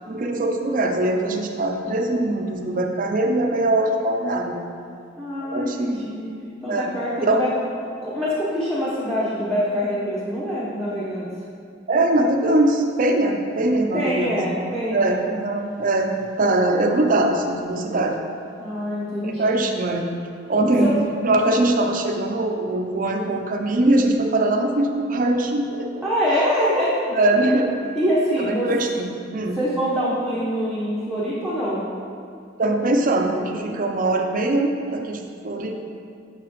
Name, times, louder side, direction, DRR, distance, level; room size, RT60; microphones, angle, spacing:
voice 1, 0.1-4.6 5.4-6.0 6.7-6.9 7.2-7.4 11.9-14.4 14.9-18.3 19.2-20.1 20.5-20.9 21.2-26.1 27.1-27.8 28.4-29.6 32.6-35.8, right 2 dB, 45° right, 3 dB, 0.6 m, -22 dB
voice 2, 5.2-6.3 6.6-7.5 8.0-11.3 13.9-15.2 18.6-19.6 20.8-20.9 26.0-26.9 27.4-27.5 27.9-28.7 29.5-31.8, equal, ahead, -10 dB, 1.0 m, -24 dB
6.8 x 6.5 x 3.1 m, 2.4 s
head